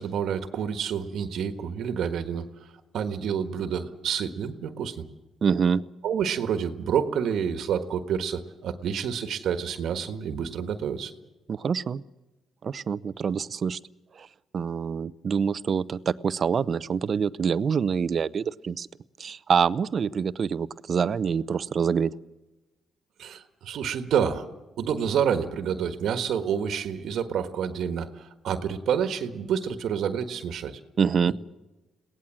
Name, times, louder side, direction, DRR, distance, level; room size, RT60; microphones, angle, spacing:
voice 1, 0.0-2.5 2.9-5.0 6.0-11.1 23.2-24.4 24.8-30.8 31.3-31.4, right 8 dB, 75° right, 8 dB, 1.5 m, -28 dB
voice 2, 5.4-5.8 11.5-12.0 12.6-13.8 14.2-14.3 14.5-18.9 19.2-22.1 31.0-31.3, right 6 dB, 50° right, 17 dB, 0.7 m, -26 dB
22.5 x 17.5 x 7.5 m, 1.1 s
cardioid pair, 90°, 0 cm